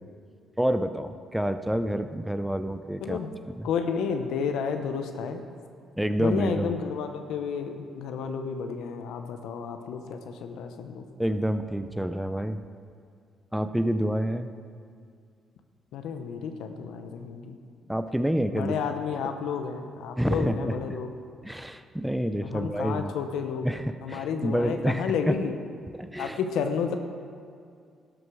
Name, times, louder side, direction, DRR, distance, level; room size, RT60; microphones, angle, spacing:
voice 1, 0.6-3.2 3.6-3.7 6.0-6.7 11.2-12.6 13.5-14.5 17.9-18.8 20.2-20.8 21.4-23.1 23.6-25.4 26.0-26.4, equal, 5° right, 10 dB, 0.5 m, -28 dB
voice 2, 3.6-5.4 6.2-11.0 15.9-17.6 18.5-21.1 22.3-23.7 24.0-25.6 26.2-27.0, left 6 dB, 85° left, 6 dB, 0.9 m, -31 dB
12.5 x 8.0 x 6.2 m, 2.3 s
cardioid pair, 90°, 0 cm